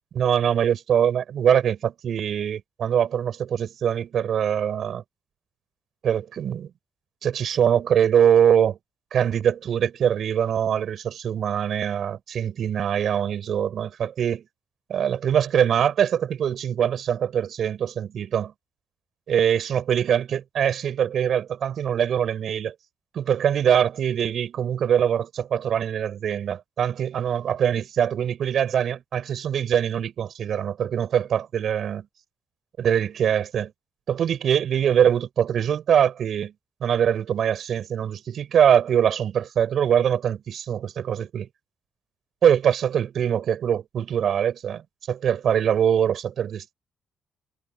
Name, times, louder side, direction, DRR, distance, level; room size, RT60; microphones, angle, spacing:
voice 1, 0.1-5.0 6.0-6.7 7.2-8.8 9.1-14.4 14.9-18.5 19.3-22.7 23.1-32.1 32.8-33.7 34.1-36.5 36.8-41.5 42.4-46.7, right 9 dB, 65° right, 6.1 m, -23 dB
cardioid pair, 90°, 0 cm